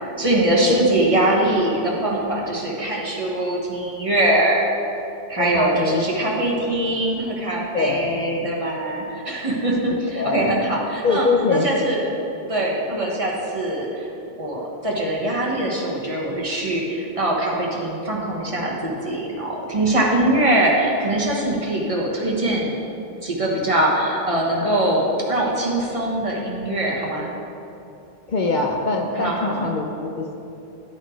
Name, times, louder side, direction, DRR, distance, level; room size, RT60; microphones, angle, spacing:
voice 1, 0.0-4.6 5.3-12.1 12.5-14.1 14.4-22.7 23.2-27.3 29.1-29.7, right 1 dB, 35° right, -3 dB, 1.2 m, -22 dB
voice 2, 5.4-6.0 7.7-8.2 10.2-10.5 11.0-11.7 28.3-30.3, left 3 dB, 55° left, 1 dB, 0.7 m, -23 dB
12.0 x 4.1 x 4.5 m, 2.8 s
omnidirectional pair, 1.1 m